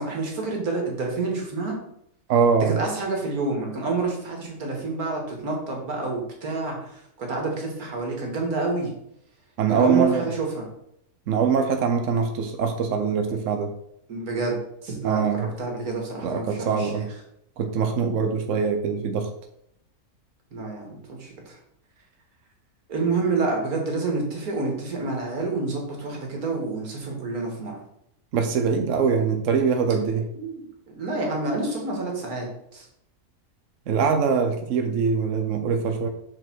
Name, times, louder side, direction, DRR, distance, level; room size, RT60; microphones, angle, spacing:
voice 1, 0.0-1.8 2.7-8.9 9.7-10.6 14.1-17.1 20.5-21.6 22.9-27.7 30.4-30.6 31.0-32.5 32.7-32.9, right 3 dB, 90° right, 0 dB, 2.1 m, -28 dB
voice 2, 2.3-2.8 9.6-10.2 11.3-13.7 15.0-15.5 16.2-17.0 17.6-19.3 28.3-30.3 33.9-36.1, right 6 dB, 65° right, 6 dB, 1.0 m, -23 dB
6.5 x 4.5 x 4.4 m, 0.75 s
omnidirectional pair, 1.5 m